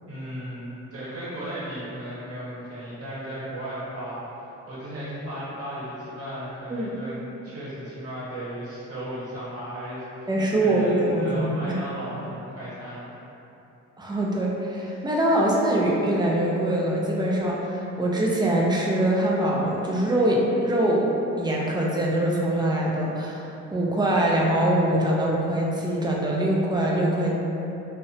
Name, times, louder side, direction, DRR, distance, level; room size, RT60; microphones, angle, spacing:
voice 1, 0.1-10.3 10.6-13.1, right 1 dB, 50° right, -11 dB, 0.9 m, -35 dB
voice 2, 10.3-11.7 14.0-21.1 21.4-27.4, right 1 dB, 15° right, -3 dB, 0.3 m, -23 dB
2.6 x 2.1 x 2.6 m, 2.9 s
cardioid pair, 90°, 30 cm